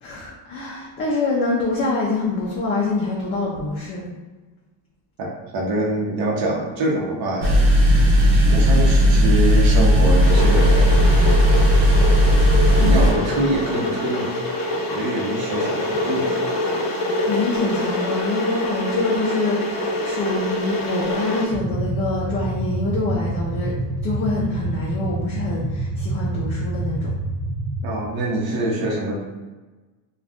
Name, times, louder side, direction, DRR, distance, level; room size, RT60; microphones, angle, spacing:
voice 1, 0.0-4.1 12.8-13.1 17.3-23.7 24.0-27.1, left 2 dB, 30° left, -4 dB, 0.4 m, -25 dB
voice 2, 5.5-7.6 7.9-11.5 12.8-14.3 14.9-16.4 27.8-29.2, right 1 dB, 50° right, -2 dB, 0.9 m, -25 dB
sound 1, 7.4-13.1, equal, 90° right, 1.0 m, -15 dB
Water / Boiling, 10.2-21.5, left 1 dB, 45° left, 0.8 m, -25 dB
sound 2, 21.5-27.8, right 2 dB, 10° right, 0.6 m, -27 dB
2.5 x 2.4 x 3.5 m, 1.2 s
cardioid pair, 135°, 45 cm